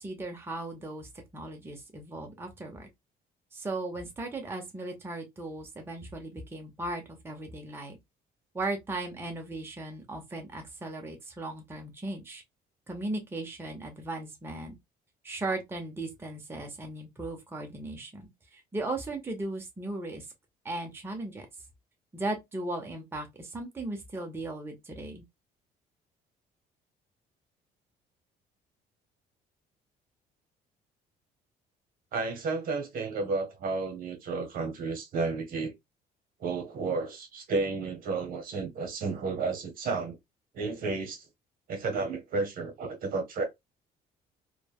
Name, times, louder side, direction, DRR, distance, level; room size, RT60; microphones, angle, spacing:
voice 1, 0.0-2.9 3.5-8.0 8.5-12.4 12.9-14.7 15.2-20.3 20.6-21.5 22.1-25.2, right 2 dB, 15° right, 0.7 m, -37 dB
voice 2, 32.1-35.7 36.4-40.2 40.5-41.3 41.7-43.5, right 4 dB, 55° right, 1.0 m, -32 dB
3.2 x 2.2 x 2.2 m
cardioid pair, 110°, 17 cm